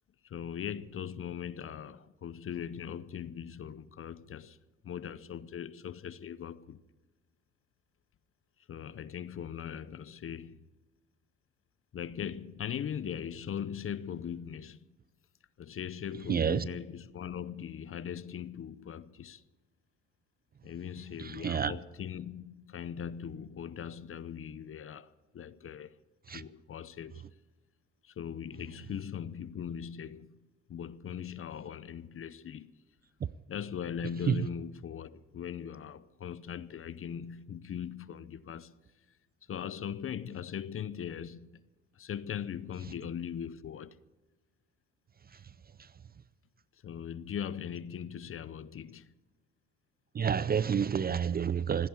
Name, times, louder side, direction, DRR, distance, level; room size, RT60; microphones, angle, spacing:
voice 1, 0.2-4.6 4.8-6.8 8.7-10.7 11.9-14.9 15.6-19.4 20.6-26.0 26.3-27.2 28.0-30.4 30.7-32.7 33.5-38.7 39.5-41.6 41.9-44.0 46.8-49.1, left 8 dB, 45° left, 0.7 m, -40 dB
voice 2, 16.3-16.7 21.2-21.7 26.3-26.4 34.3-34.4 50.1-51.9, right 7 dB, 30° right, 0.4 m, -29 dB
15.0 x 10.0 x 8.4 m
cardioid pair, 90°, 30 cm